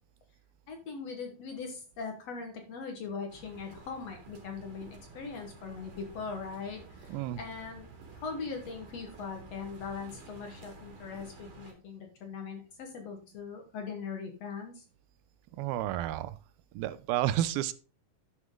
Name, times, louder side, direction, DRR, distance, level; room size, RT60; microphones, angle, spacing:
voice 1, 0.7-7.9 8.1-14.8, left 5 dB, 60° left, 4 dB, 2.0 m, -40 dB
sound 1, 3.3-11.7, right 3 dB, 65° right, 4.0 m, -51 dB
voice 2, 15.6-16.4 16.8-17.7, right 13 dB, 90° right, 15 dB, 2.4 m, -31 dB
11.5 x 6.2 x 3.7 m, 0.35 s
omnidirectional pair, 4.2 m